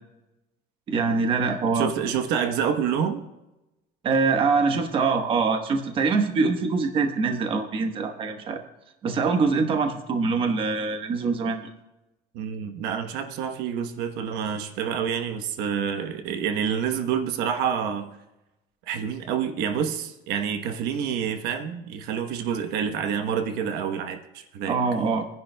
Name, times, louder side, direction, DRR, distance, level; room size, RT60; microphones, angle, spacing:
voice 1, 0.9-1.9 4.0-8.6 9.0-11.6 24.7-25.3, right 4 dB, 30° right, 5 dB, 1.1 m, -24 dB
voice 2, 1.7-3.2 12.3-18.1 18.9-24.8, right 7 dB, 70° right, 6 dB, 1.1 m, -28 dB
26.5 x 10.5 x 2.2 m, 0.96 s
cardioid pair, 170°, 18 cm